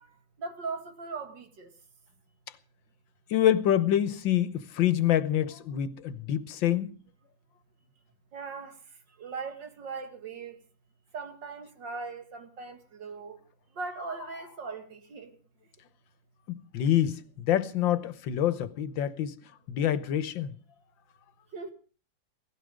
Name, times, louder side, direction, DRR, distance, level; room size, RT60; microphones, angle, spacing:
voice 1, 0.0-1.7 8.3-10.6 11.1-13.4 13.7-15.4 21.5-21.7, right 4 dB, 70° right, 2.7 m, -39 dB
voice 2, 3.3-7.0 16.5-19.3 19.7-20.5, left 11 dB, 80° left, 1.7 m, -26 dB
18.0 x 15.5 x 5.1 m
omnidirectional pair, 2.0 m